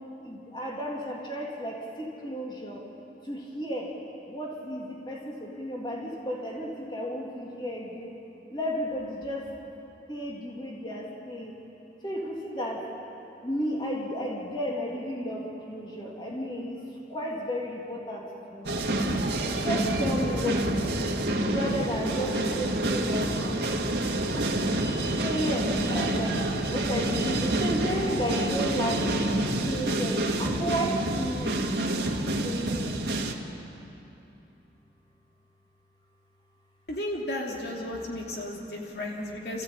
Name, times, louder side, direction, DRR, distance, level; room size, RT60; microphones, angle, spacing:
voice 1, 0.2-2.8 3.2-3.9 4.3-8.1 8.5-9.5 10.1-11.5 12.0-12.9 13.4-16.8 17.1-18.8 19.6-23.8 24.3-26.4 26.7-29.1 29.6-31.6 32.4-33.1 38.0-39.0, equal, 25° left, -2 dB, 3.1 m, -33 dB
sound 1, 18.6-33.3, right 1 dB, 75° right, 2.1 m, -28 dB
voice 2, 36.9-39.6, left 1 dB, 65° left, -1 dB, 2.8 m, -34 dB
29.0 x 15.0 x 8.8 m, 3.0 s
head